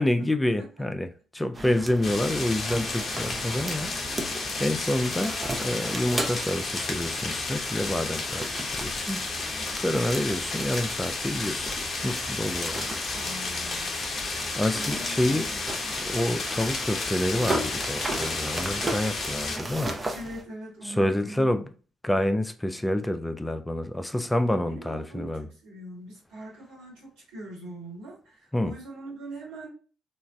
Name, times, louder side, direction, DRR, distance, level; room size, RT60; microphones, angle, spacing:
voice 1, 0.0-4.3 4.6-9.3 9.8-11.7 12.0-12.9 14.6-15.5 16.1-19.9 20.8-21.7 22.0-25.5 28.5-28.7, left 1 dB, 10° left, 0.3 m, -28 dB
sound 1, 1.5-20.4, right 1 dB, 20° right, 0.7 m, -37 dB
sound 2, 2.0-19.6, left 3 dB, 35° left, 0.8 m, -32 dB
voice 2, 13.1-13.9 14.5-16.0 20.1-21.5 24.6-29.7, right 1 dB, 75° right, 1.3 m, -42 dB
3.0 x 2.4 x 2.2 m
hypercardioid pair, 45°, 0 cm